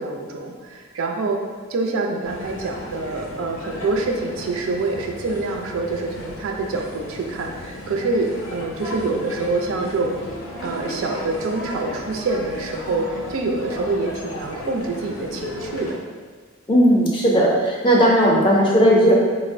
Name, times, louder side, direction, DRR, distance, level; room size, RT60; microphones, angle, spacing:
voice 1, 0.0-1.4 1.7-10.1 10.6-16.0, right 3 dB, 80° right, 2 dB, 0.4 m, -26 dB
sound 1, 2.2-15.9, left 1 dB, 85° left, 0.6 m, -35 dB
voice 2, 16.7-19.1, equal, 25° left, -3 dB, 0.4 m, -16 dB
4.2 x 2.0 x 2.5 m, 1.5 s
head